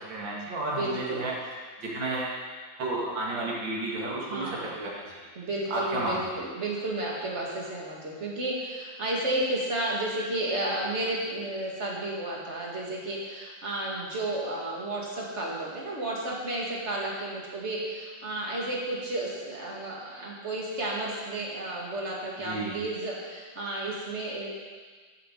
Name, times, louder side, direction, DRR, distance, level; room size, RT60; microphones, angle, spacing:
voice 1, 0.0-1.3 1.8-2.4 2.8-5.3 5.7-6.2 22.4-22.7, right 2 dB, 70° right, -4 dB, 2.8 m, -32 dB
voice 2, 0.7-1.2 4.3-4.7 5.4-24.5, right 1 dB, 35° right, -3 dB, 2.3 m, -32 dB
13.5 x 7.9 x 4.0 m, 1.5 s
omnidirectional pair, 2.1 m